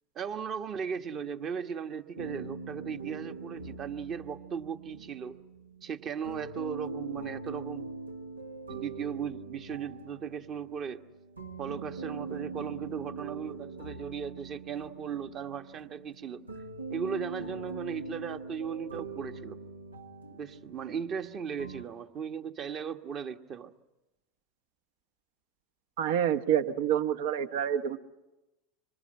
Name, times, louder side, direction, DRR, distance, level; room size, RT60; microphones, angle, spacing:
voice 1, 0.1-5.4 5.8-7.9 8.7-11.0 11.6-16.4 16.9-19.6 20.3-23.7, right 7 dB, 40° right, 7 dB, 1.4 m, -37 dB
sound 1, 2.1-21.8, right 4 dB, 90° right, 1.1 m, -42 dB
voice 2, 26.0-28.0, right 9 dB, 65° right, 11 dB, 1.1 m, -27 dB
25.5 x 25.0 x 8.8 m, 1.0 s
figure-of-eight pair, 80°, 0 cm